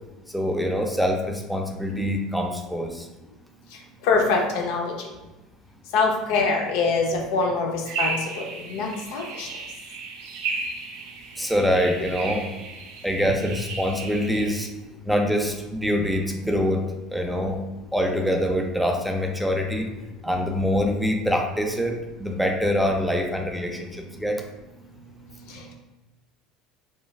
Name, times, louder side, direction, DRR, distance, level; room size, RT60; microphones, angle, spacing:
voice 1, 0.3-3.1 11.4-12.5 13.0-14.7 15.1-17.6 17.9-19.9 20.2-21.9 22.2-24.4, equal, ahead, 2 dB, 0.4 m, -24 dB
voice 2, 4.0-4.9 5.9-7.7 8.0-9.5, left 4 dB, 70° left, 1 dB, 0.5 m, -24 dB
sound 1, 7.9-14.7, right 4 dB, 75° right, 0.5 m, -34 dB
3.1 x 2.2 x 2.3 m, 1.1 s
hypercardioid pair, 75°, 0 cm